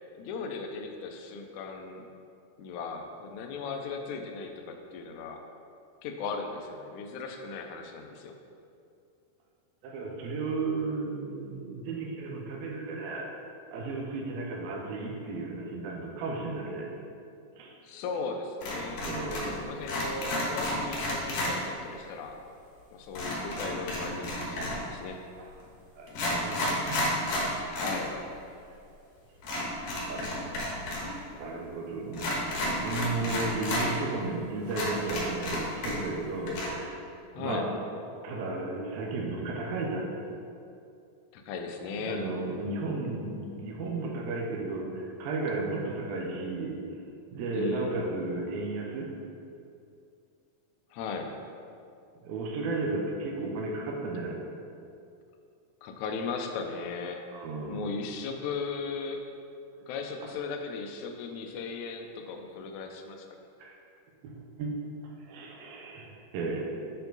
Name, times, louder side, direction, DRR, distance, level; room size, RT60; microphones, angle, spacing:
voice 1, 0.2-2.1 2.6-5.4 6.0-8.3 17.8-19.0 19.3-22.4 22.9-25.2 27.7-28.1 37.3-37.7 41.3-42.2 47.5-48.0 50.9-51.3 55.8-57.2 57.7-59.2 59.8-63.2, left 4 dB, 85° left, 4 dB, 1.7 m, -37 dB
voice 2, 9.8-13.3 13.7-16.9 17.6-17.8 19.0-19.7 26.0-27.7 30.1-37.0 37.4-37.7 38.2-40.1 42.0-46.8 47.3-49.1 52.2-54.4 57.3-58.0 63.6-63.8 64.2-64.8 65.3-66.6, right 3 dB, 85° right, 0 dB, 2.6 m, -34 dB
sound 1, 18.6-19.6 19.8-21.5 23.1-24.9 25.6-25.7 26.1-28.0 28.3-28.4 29.4-31.1 31.3-31.4 32.1-33.9 34.3-34.4 34.7-36.2 36.5-36.7, left 1 dB, 65° left, 2.3 m, -31 dB
7.6 x 4.5 x 3.9 m, 2.5 s
omnidirectional pair, 4.1 m